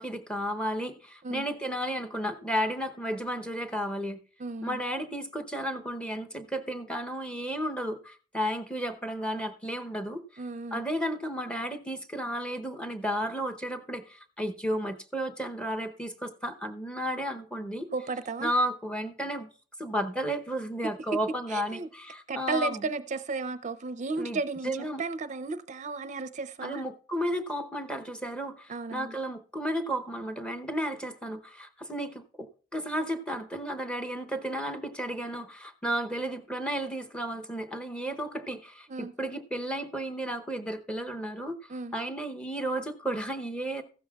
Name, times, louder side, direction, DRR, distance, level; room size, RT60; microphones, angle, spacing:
voice 1, 0.0-4.2 4.6-10.2 10.7-17.9 18.4-19.5 19.8-22.8 24.2-25.0 26.6-41.6 41.9-43.8, equal, 5° left, 0.8 m, -33 dB
voice 2, 4.4-4.8 10.4-10.8 17.9-18.5 21.5-21.9 22.3-26.8 28.7-29.1 38.9-39.1 41.7-41.9, right 3 dB, 40° right, 0.5 m, -34 dB
15.0 x 12.5 x 2.3 m
head